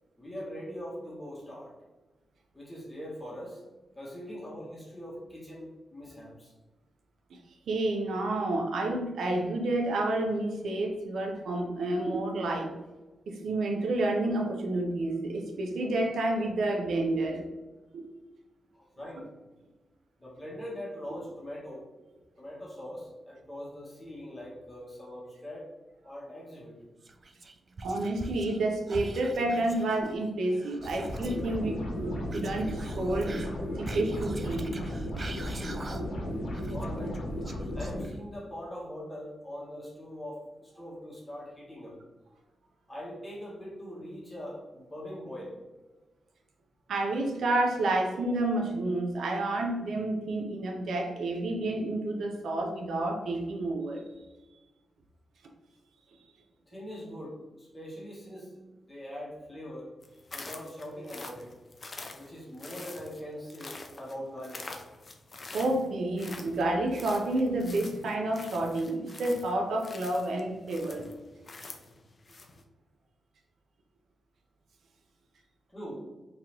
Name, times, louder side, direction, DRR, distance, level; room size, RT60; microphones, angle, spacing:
voice 1, 0.2-1.7 2.5-3.6 3.9-6.5 18.7-19.3 20.2-21.9 22.4-25.7 26.0-26.8 36.5-37.2 37.7-42.0 42.9-45.6 56.7-59.9 60.3-61.6 62.1-64.7 75.7-76.0, equal, 10° left, -5 dB, 1.1 m, -42 dB
voice 2, 7.7-12.8 13.3-17.5 17.9-18.0 27.8-33.5 33.7-34.7 46.9-54.0 65.5-71.1, right 2 dB, 85° right, 2 dB, 0.6 m, -30 dB
Whispering, 27.0-28.6 28.9-31.5 32.3-36.3 36.5-38.3, right 2 dB, 30° right, 0.3 m, -43 dB
sound 1, 30.8-38.0, left 1 dB, 85° left, 0.9 m, -35 dB
sound 2, 60.0-72.6, left 3 dB, 35° left, 0.4 m, -46 dB
3.7 x 3.0 x 2.9 m, 1.2 s
wide cardioid pair, 160°, 0 cm